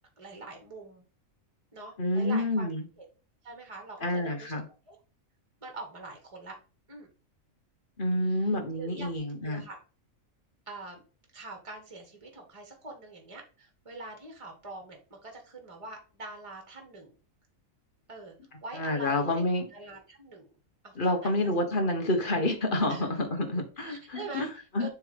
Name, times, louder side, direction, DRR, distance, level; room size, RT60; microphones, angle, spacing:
voice 1, 0.2-1.0 1.7-2.7 3.0-3.1 3.4-4.6 4.9-5.0 5.6-6.6 6.9-7.1 8.2-9.8 10.7-11.0 11.3-17.1 18.1-19.4 19.7-20.5 20.8-21.5 22.9-23.1 23.4-24.9, right 3 dB, 25° right, 3 dB, 1.7 m, -44 dB
voice 2, 2.0-2.9 4.0-4.6 8.0-9.6 18.8-19.7 21.0-24.5 24.7-24.9, left 1 dB, 40° left, 4 dB, 1.5 m, -28 dB
7.1 x 3.6 x 5.3 m, 0.35 s
omnidirectional pair, 1.4 m